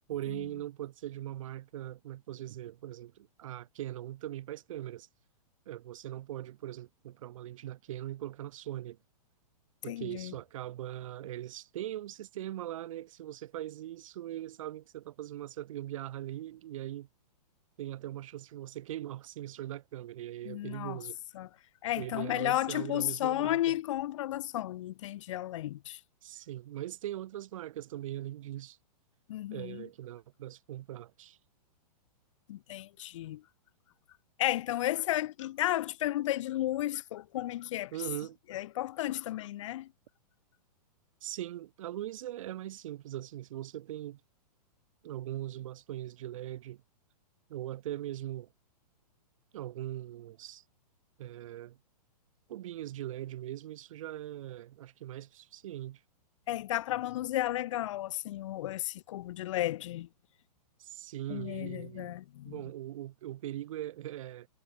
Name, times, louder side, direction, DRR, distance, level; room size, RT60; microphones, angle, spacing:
voice 1, 0.1-5.1 5.7-9.0 9.8-17.1 17.8-21.2 21.9-23.8 26.2-28.8 29.5-31.4 37.9-38.4 41.2-44.2 45.0-46.8 47.5-48.5 49.5-50.6 51.2-51.8 52.5-56.0 60.8-62.2 62.4-64.5, right 13 dB, 55° right, 2.9 m, -40 dB
voice 2, 9.9-10.3 20.5-21.0 21.3-21.5 21.8-26.0 29.3-29.9 32.5-33.4 34.4-37.9 38.5-39.9 56.5-60.1 61.3-62.6, left 14 dB, 50° left, 2.5 m, -33 dB
hypercardioid pair, 160°, 21 cm